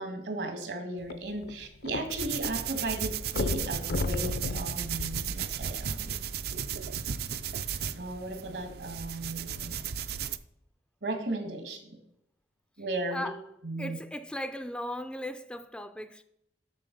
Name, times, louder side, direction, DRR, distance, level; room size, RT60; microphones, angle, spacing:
voice 1, 0.0-6.2 8.0-9.8 11.0-11.9 12.8-13.3 13.6-14.0, right 2 dB, 75° right, 1.8 m, -36 dB
sound 1, 1.0-2.5 2.8-2.9 3.3-5.9 6.6-6.7, left 2 dB, 60° left, 0.5 m, -34 dB
sound 2, 2.1-10.4, right 8 dB, 60° right, 0.4 m, -35 dB
voice 2, 13.8-16.2, left 1 dB, 5° left, 0.3 m, -37 dB
7.5 x 6.4 x 5.3 m
head